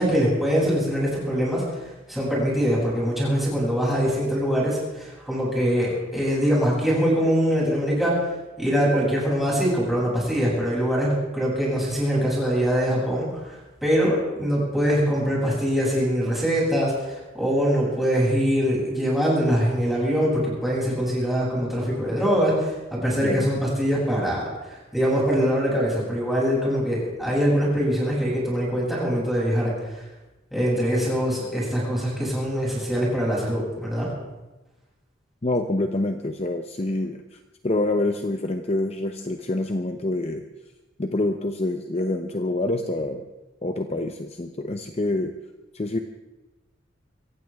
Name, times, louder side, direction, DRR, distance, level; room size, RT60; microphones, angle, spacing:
voice 1, 0.0-1.6 2.1-8.1 8.6-24.4 24.9-29.7 30.5-34.1, equal, ahead, -6 dB, 7.2 m, -23 dB
voice 2, 35.4-40.4 41.0-43.2 43.6-45.3 45.7-46.0, left 2 dB, 35° left, 6 dB, 0.8 m, -26 dB
24.5 x 15.5 x 3.5 m, 1.1 s
head